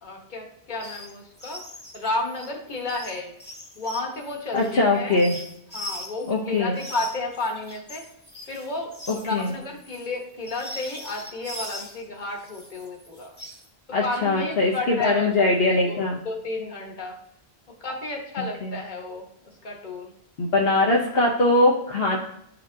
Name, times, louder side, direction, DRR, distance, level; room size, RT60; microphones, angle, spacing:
voice 1, 0.0-1.6 1.9-3.3 3.8-5.2 5.7-8.0 8.5-13.3 14.0-16.0 16.2-17.2 17.8-20.1, left 2 dB, 50° left, 1 dB, 1.3 m, -32 dB
sound 1, 0.7-1.1 1.4-6.3 6.7-12.0 12.4-13.7, equal, 10° left, 1.2 m, -40 dB
voice 2, 4.5-5.3 6.2-6.8 9.1-9.5 13.9-16.2 18.4-18.8 20.4-22.2, left 2 dB, 70° left, -2 dB, 1.0 m, -22 dB
11.5 x 4.3 x 2.7 m, 0.75 s
omnidirectional pair, 1.1 m